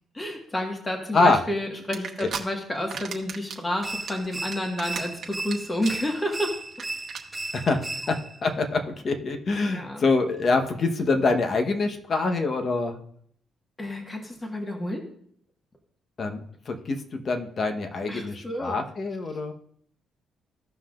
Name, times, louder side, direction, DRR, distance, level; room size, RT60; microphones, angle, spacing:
voice 1, 0.1-6.6 9.7-10.0 13.8-15.0 18.1-18.8, left 1 dB, 20° left, 1 dB, 1.7 m, -30 dB
sound 1, 1.9-2.4 2.7-3.6 3.9-5.5 5.8-6.1 6.4-6.5 6.7-6.8 7.1-7.2 7.6-7.7, right 6 dB, 55° right, 1.4 m, -34 dB
sound 2, 3.8-8.4, right 2 dB, 25° right, 0.4 m, -36 dB
voice 2, 7.5-13.0 16.2-19.5, left 3 dB, 45° left, 5 dB, 1.2 m, -25 dB
15.5 x 5.7 x 2.6 m, 0.64 s
cardioid pair, 90°, 0 cm